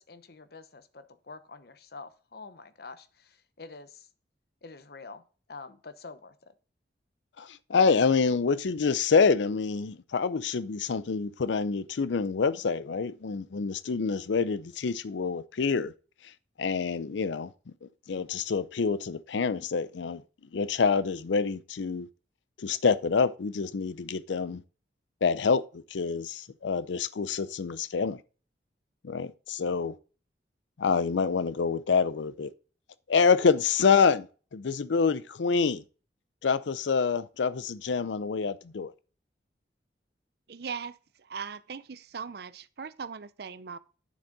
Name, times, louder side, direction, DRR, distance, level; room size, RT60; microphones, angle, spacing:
voice 1, 0.0-4.1 4.6-5.2 5.5-6.5, left 4 dB, 60° left, 0.9 m, -47 dB
voice 2, 7.4-15.9 16.6-17.5 17.8-20.2 20.5-22.1 22.6-24.6 25.2-28.2 29.0-29.9 30.8-32.5 33.1-34.3 34.5-35.8 36.4-38.9, left 5 dB, 80° left, 0.5 m, -27 dB
voice 3, 40.5-40.9 41.3-43.8, right 6 dB, 60° right, 0.5 m, -39 dB
9.4 x 7.1 x 3.9 m
head